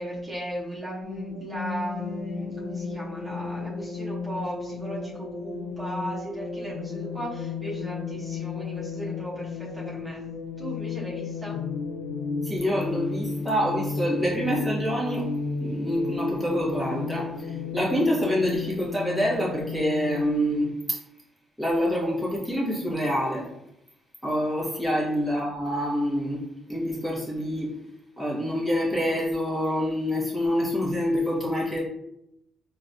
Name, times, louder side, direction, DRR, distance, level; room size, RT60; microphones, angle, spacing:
voice 1, 0.0-10.2 10.6-11.6, right 1 dB, 25° right, -6 dB, 1.0 m, -36 dB
sound 1, 1.0-20.2, left 4 dB, 80° left, 0.4 m, -33 dB
voice 2, 12.4-15.3 15.6-21.0 21.6-23.5 24.2-26.4 26.7-27.7 28.2-31.8, equal, ahead, -5 dB, 1.2 m, -26 dB
3.9 x 2.4 x 2.7 m, 0.81 s
cardioid pair, 90°, 0 cm